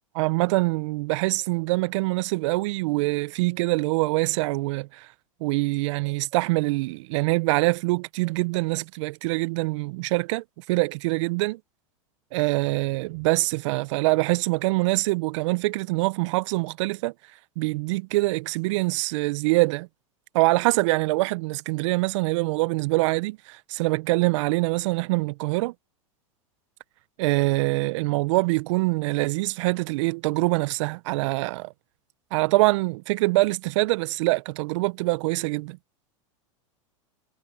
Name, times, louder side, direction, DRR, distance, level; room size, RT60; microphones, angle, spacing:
voice 1, 0.1-5.1 5.4-11.6 12.3-17.1 17.6-19.9 20.3-25.7 27.2-31.7 32.3-35.8, right 23 dB, 60° right, 0.7 m, -24 dB
hypercardioid pair, 105°, 17 cm